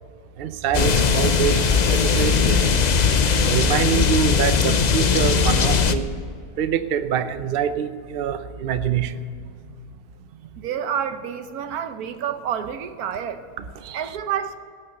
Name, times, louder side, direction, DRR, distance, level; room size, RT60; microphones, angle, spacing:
voice 1, 0.4-2.7 3.4-6.1 6.6-9.2 13.6-14.0, right 8 dB, 50° right, 0.7 m, -25 dB
sound 1, 0.7-5.9, left 6 dB, 60° left, 0.4 m, -19 dB
voice 2, 10.6-13.4 13.9-14.6, right 8 dB, 75° right, 1.3 m, -28 dB
17.5 x 6.7 x 6.7 m
omnidirectional pair, 1.6 m